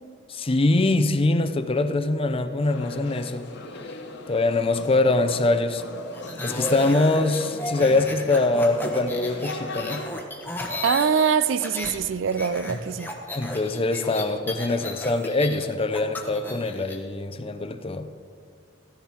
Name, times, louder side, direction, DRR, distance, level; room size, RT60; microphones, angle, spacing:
voice 1, 0.3-3.5 4.3-5.8 6.4-10.1 13.3-18.1, left 2 dB, 30° left, 0.6 m, -23 dB
sound 1, 2.6-10.1, left 2 dB, 60° left, 1.2 m, -39 dB
sound 2, 6.1-12.0 12.3-17.0, left 1 dB, 10° left, 1.2 m, -34 dB
voice 2, 10.8-13.1, right 6 dB, 65° right, 0.5 m, -23 dB
14.5 x 10.5 x 4.4 m
head